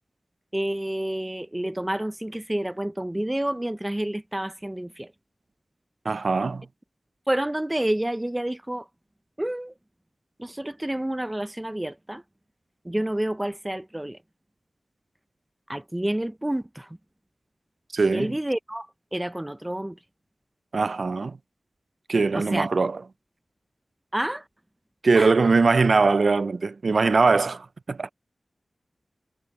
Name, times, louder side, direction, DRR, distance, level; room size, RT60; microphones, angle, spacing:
voice 1, 0.5-5.1 7.3-8.9 9.4-9.7 10.4-12.2 12.8-14.2 15.7-17.0 18.1-18.9 19.1-20.0 22.3-22.7 24.1-24.4 25.1-25.3, right 1 dB, 15° right, 0.6 m, -29 dB
voice 2, 6.1-6.6 17.9-18.3 20.7-21.4 22.1-23.0 25.0-28.1, right 4 dB, 70° right, 0.3 m, -21 dB
wide cardioid pair, 70°, 0 cm